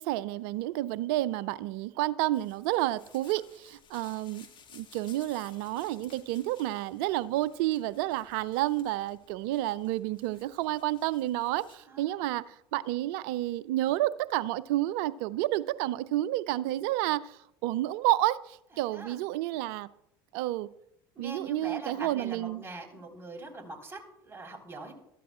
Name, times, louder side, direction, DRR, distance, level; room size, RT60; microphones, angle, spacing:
voice 1, 0.0-4.5 4.7-19.9 20.3-20.7 21.2-22.6, right 15 dB, 70° right, 17 dB, 0.4 m, -30 dB
sound 1, 2.3-11.8, left 7 dB, 40° left, 2.2 m, -58 dB
voice 2, 11.9-12.4 18.7-19.2 21.1-24.9, right 2 dB, 20° right, 1 dB, 4.4 m, -43 dB
21.0 x 13.5 x 2.4 m, 0.80 s
hypercardioid pair, 75°, 13 cm